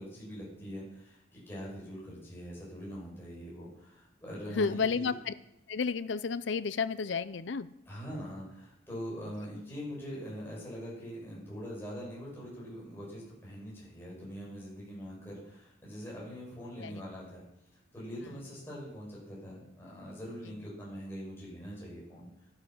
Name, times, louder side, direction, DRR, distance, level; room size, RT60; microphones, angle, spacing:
voice 1, 0.0-5.1 7.9-17.4 17.9-22.5, equal, 15° left, -7 dB, 6.3 m, -43 dB
voice 2, 4.5-5.3 5.7-7.7 16.8-17.0, left 5 dB, 75° left, 14 dB, 0.5 m, -31 dB
12.0 x 11.0 x 6.1 m, 0.81 s
head